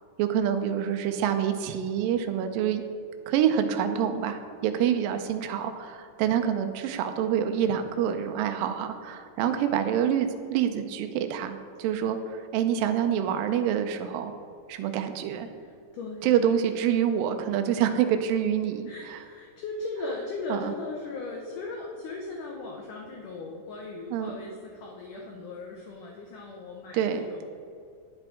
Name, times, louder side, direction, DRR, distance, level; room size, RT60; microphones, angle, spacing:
voice 1, 0.2-2.8 3.3-14.3 14.7-15.5 16.2-19.2 20.5-20.7 24.1-24.3 26.9-27.2, right 9 dB, 80° right, 7 dB, 2.1 m, -26 dB
voice 2, 15.6-16.3 18.9-27.5, left 3 dB, 80° left, -1 dB, 1.9 m, -38 dB
9.8 x 7.5 x 3.7 m, 2.4 s
omnidirectional pair, 4.6 m